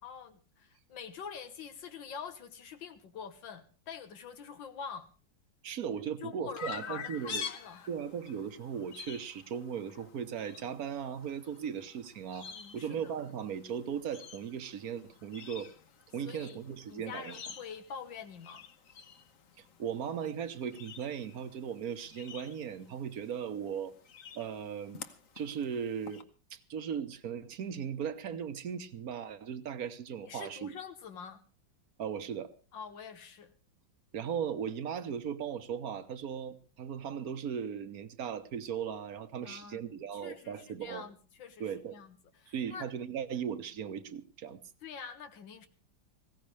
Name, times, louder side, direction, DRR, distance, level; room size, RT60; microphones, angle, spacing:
voice 1, 0.0-5.1 6.2-7.9 12.5-13.1 16.2-16.6 16.9-18.7 30.2-31.4 32.7-33.5 39.4-39.8 40.1-42.9 44.8-45.7, left 6 dB, 80° left, 8 dB, 1.9 m, -46 dB
voice 2, 5.6-7.5 7.9-15.7 16.1-17.4 19.6-23.9 24.3-25.1 25.4-26.2 26.5-30.7 32.0-32.5 34.1-41.1 41.6-42.0 42.5-44.6, right 8 dB, 55° right, 11 dB, 1.4 m, -37 dB
Chirp tweet, 6.6-26.2, left 6 dB, 50° left, 1.3 m, -48 dB
19.5 x 16.5 x 3.3 m, 0.36 s
omnidirectional pair, 2.0 m